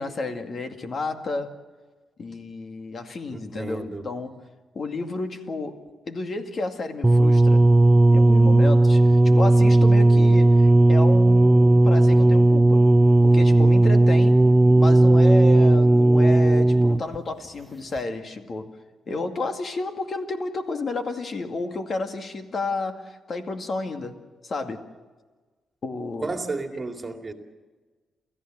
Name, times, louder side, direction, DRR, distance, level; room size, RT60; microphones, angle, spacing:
voice 1, 0.0-1.5 2.2-4.4 4.7-5.8 6.1-7.7 8.1-12.8 13.2-14.4 14.8-18.7 19.1-24.2 24.4-24.8 25.8-26.3 26.7-26.8, left 3 dB, 50° left, 2.3 m, -31 dB
voice 2, 3.3-4.1 26.2-27.3, right 3 dB, 30° right, 2.3 m, -32 dB
sound 1, 7.0-17.2 18.0-18.1, right 2 dB, 10° right, 0.6 m, -15 dB
29.0 x 14.5 x 7.7 m
cardioid pair, 90°, 0 cm